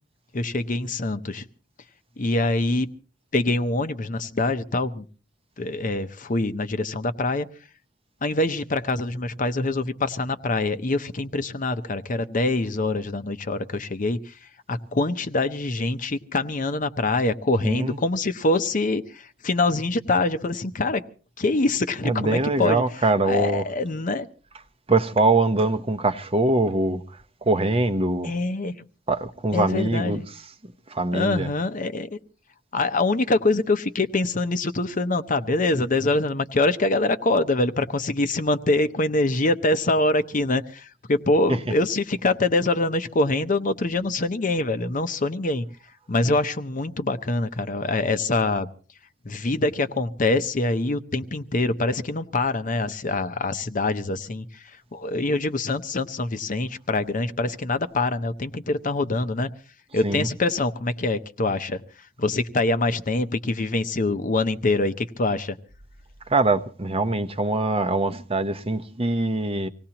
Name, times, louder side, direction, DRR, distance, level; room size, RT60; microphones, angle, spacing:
voice 1, 0.3-1.5 2.2-2.9 3.3-5.0 5.6-7.5 8.2-14.4 14.7-21.0 21.4-22.8 23.2-24.3 28.2-28.8 29.5-30.3 31.1-32.2 32.7-45.7 46.1-48.7 49.2-59.5 59.9-65.6, left 2 dB, 40° left, 0.8 m, -24 dB
voice 2, 17.6-18.0 22.0-23.6 24.9-27.0 27.4-28.3 29.1-30.2 30.9-31.5 60.0-60.3 66.3-69.7, right 2 dB, 30° right, 0.8 m, -23 dB
25.5 x 18.0 x 2.9 m
head